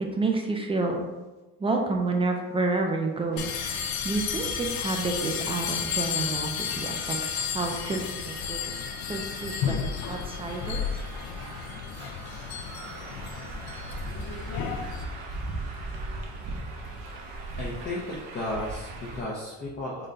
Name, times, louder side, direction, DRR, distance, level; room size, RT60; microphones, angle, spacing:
voice 1, 0.1-1.0 1.6-8.8 9.1-10.8, right 3 dB, 15° right, 2 dB, 0.3 m, -30 dB
sound 1, 3.3-19.2, right 2 dB, 75° right, 0.8 m, -40 dB
sound 2, 3.4-15.0, left 7 dB, 65° left, 0.5 m, -32 dB
voice 2, 17.6-20.1, left 1 dB, 25° left, -6 dB, 0.6 m, -34 dB
3.8 x 2.2 x 3.8 m, 1.1 s
cardioid pair, 135°, 37 cm